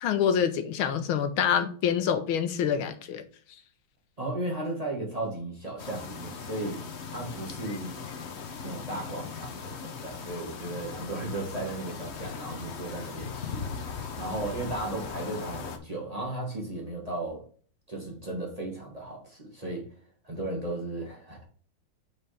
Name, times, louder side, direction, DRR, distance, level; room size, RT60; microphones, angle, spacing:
voice 1, 0.0-3.2, left 8 dB, 80° left, 1.6 m, -26 dB
voice 2, 4.2-6.8 7.1-8.0 8.6-13.7 14.1-17.4 17.9-19.8 20.2-21.4, right 2 dB, 20° right, 1.7 m, -35 dB
sound 1, 5.8-15.8, left 6 dB, 55° left, 0.7 m, -39 dB
7.0 x 5.1 x 3.4 m
omnidirectional pair, 2.3 m